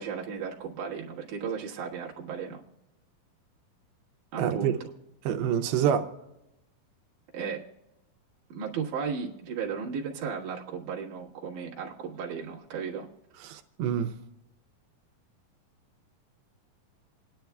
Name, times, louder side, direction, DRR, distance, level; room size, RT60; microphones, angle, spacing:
voice 1, 0.0-2.6 4.3-4.8 7.3-7.7 8.5-13.1, right 6 dB, 60° right, -2 dB, 2.8 m, -35 dB
voice 2, 4.4-4.7 5.3-6.1 13.4-14.1, right 9 dB, 90° right, 6 dB, 2.6 m, -26 dB
28.0 x 10.5 x 2.3 m, 0.93 s
omnidirectional pair, 4.3 m